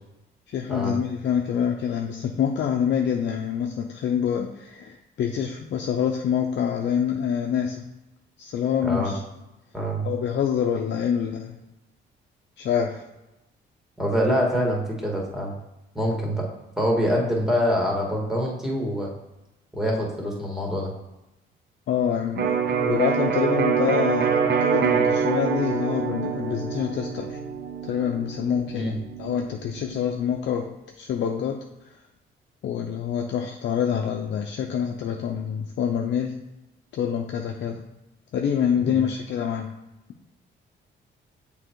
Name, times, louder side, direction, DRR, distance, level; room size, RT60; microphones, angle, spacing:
voice 1, 0.5-7.8 8.4-9.2 10.0-11.6 12.6-13.0 21.9-27.4 27.8-30.7 31.0-31.6 32.6-36.3 36.9-37.8 38.3-39.7, left 8 dB, 65° left, 2 dB, 0.6 m, -26 dB
voice 2, 8.8-9.1 9.7-10.1 14.0-15.5 15.9-16.5 16.8-19.1 19.7-20.9 28.7-29.0 38.8-39.0, equal, ahead, -2 dB, 2.1 m, -25 dB
Electric guitar, 22.4-30.1, right 7 dB, 60° right, 0.8 m, -25 dB
6.6 x 3.5 x 4.6 m, 0.98 s
cardioid pair, 90°, 20 cm